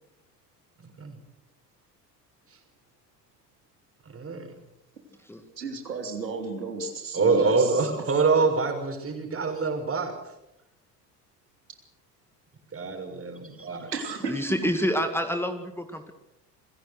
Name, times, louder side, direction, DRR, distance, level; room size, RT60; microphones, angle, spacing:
voice 1, 4.1-4.5 7.1-10.1 12.7-13.9, right 4 dB, 25° right, 5 dB, 5.7 m, -25 dB
voice 2, 5.6-7.9 8.3-8.4 13.9-14.7, right 3 dB, 90° right, 4 dB, 3.3 m, -33 dB
voice 3, 14.2-16.1, equal, 5° left, 7 dB, 2.3 m, -28 dB
27.5 x 16.5 x 6.6 m, 0.87 s
hypercardioid pair, 70°, 49 cm